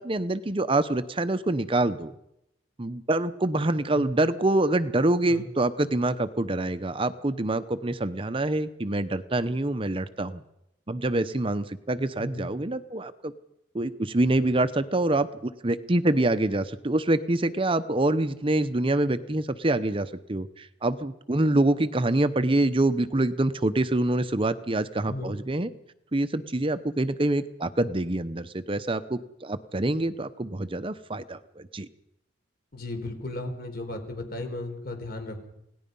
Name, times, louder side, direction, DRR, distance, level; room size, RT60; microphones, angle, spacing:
voice 1, 0.0-2.1 2.8-10.4 10.9-13.3 13.7-25.7 26.1-31.9, right 2 dB, 30° right, 12 dB, 0.8 m, -26 dB
voice 2, 12.2-12.5 25.1-25.3 32.7-35.5, left 2 dB, 55° left, 5 dB, 4.3 m, -35 dB
28.5 x 18.0 x 5.5 m, 0.81 s
head